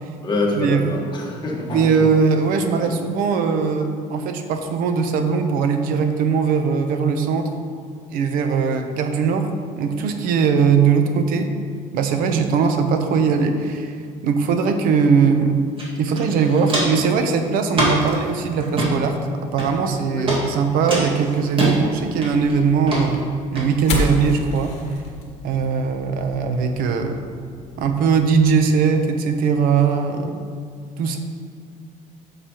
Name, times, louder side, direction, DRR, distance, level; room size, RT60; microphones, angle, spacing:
voice 1, 0.2-1.9 2.7-2.9 20.1-20.5, left 2 dB, 30° left, -2 dB, 1.4 m, -26 dB
voice 2, 1.7-7.5 8.1-9.5 9.7-11.5 11.9-13.9 14.2-15.6 16.0-19.2 19.5-23.3 23.5-24.8 25.4-27.2 27.8-30.4 31.0-31.2, right 5 dB, 80° right, 6 dB, 0.8 m, -20 dB
Walk footsteps, 15.8-15.9 16.1-17.1 17.7-18.1 18.6-18.9 19.6-19.9 20.3-20.4 20.9-21.7 22.2-22.5 22.9-23.0 23.6-23.7, right 1 dB, 35° right, 1.9 m, -23 dB
sound 1, 21.8-28.5, left 3 dB, 50° left, 1.5 m, -32 dB
9.3 x 6.7 x 3.0 m, 2.2 s
cardioid pair, 140°, 14 cm